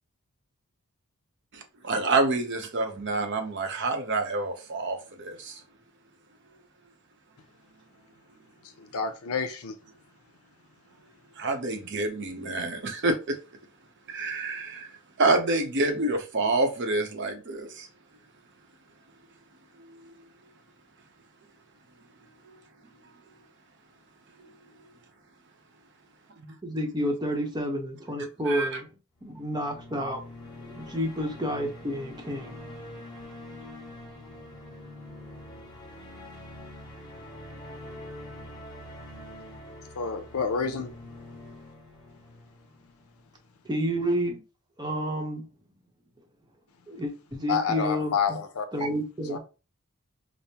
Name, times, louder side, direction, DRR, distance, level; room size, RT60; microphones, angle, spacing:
voice 1, 1.5-5.0 11.4-13.4 14.1-14.9 15.2-17.9 26.4-26.5 28.5-28.8, right 2 dB, 55° right, 0.8 m, -27 dB
voice 2, 8.8-9.7 40.0-40.9 47.5-48.9 49.3-49.4, left 6 dB, 85° left, 0.6 m, -29 dB
voice 3, 26.6-28.9 29.2-30.2 30.6-32.6 43.6-44.4 44.8-45.4 46.9-48.4 48.7-49.4, equal, 20° right, 0.8 m, -30 dB
sound 1, 29.2-43.4, left 1 dB, 20° left, 1.3 m, -45 dB
5.1 x 2.1 x 2.9 m
head